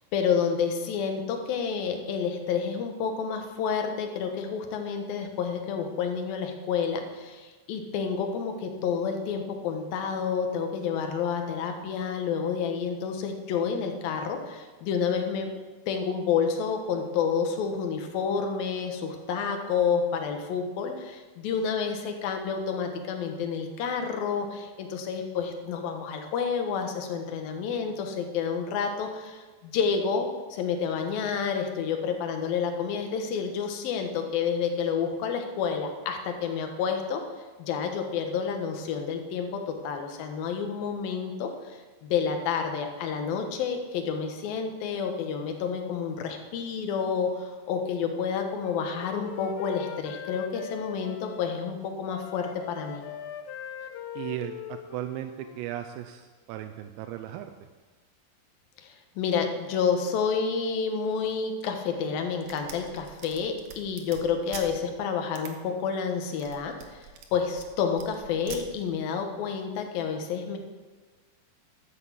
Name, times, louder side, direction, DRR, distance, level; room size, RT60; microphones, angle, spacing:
voice 1, 0.1-15.5 15.9-37.2 37.6-53.0 58.8-67.0 67.3-70.6, left 6 dB, 65° left, 4 dB, 2.7 m, -29 dB
Wind instrument woodwind instrument, 48.1-51.8 52.1-55.7, left 8 dB, 80° left, 2.9 m, -41 dB
voice 2, 54.2-57.5, right 12 dB, 85° right, 5 dB, 2.9 m, -36 dB
sound 1, 62.4-64.7 65.3-65.5 66.2-67.7 68.0-68.6, right 7 dB, 70° right, 2.5 m, -43 dB
12.5 x 8.4 x 7.5 m, 1.3 s
omnidirectional pair, 5.0 m